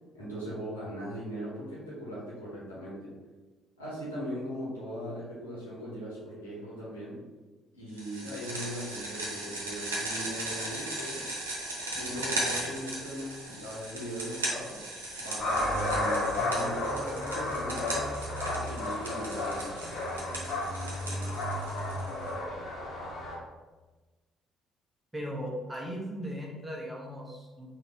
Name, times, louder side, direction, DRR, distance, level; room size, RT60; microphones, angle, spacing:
voice 1, 0.1-3.1 3.8-7.2 7.7-11.3 11.9-14.8 15.2-18.0 18.4-19.8, equal, 85° left, -7 dB, 1.4 m, -39 dB
sound 1, 8.0-22.3, right 1 dB, 85° right, 0.8 m, -37 dB
sound 2, 15.4-23.4, left 1 dB, 45° left, 1.5 m, -32 dB
voice 2, 25.1-27.8, equal, 10° right, -2 dB, 1.2 m, -38 dB
3.8 x 2.9 x 4.4 m, 1.2 s
figure-of-eight pair, 50°, 0 cm